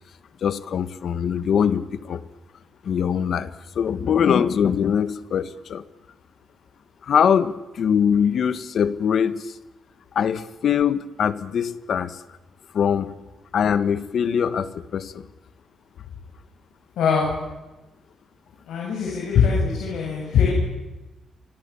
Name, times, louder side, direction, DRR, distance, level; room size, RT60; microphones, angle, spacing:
voice 1, 0.4-2.2 2.8-5.8 7.0-9.5 10.1-12.2 12.7-13.1 13.5-15.3, left 7 dB, 65° left, 13 dB, 1.5 m, -22 dB
voice 2, 17.0-17.3 18.6-20.5, left 6 dB, 85° left, -2 dB, 7.4 m, -21 dB
29.5 x 25.5 x 7.2 m, 1.1 s
cardioid pair, 95°, 0 cm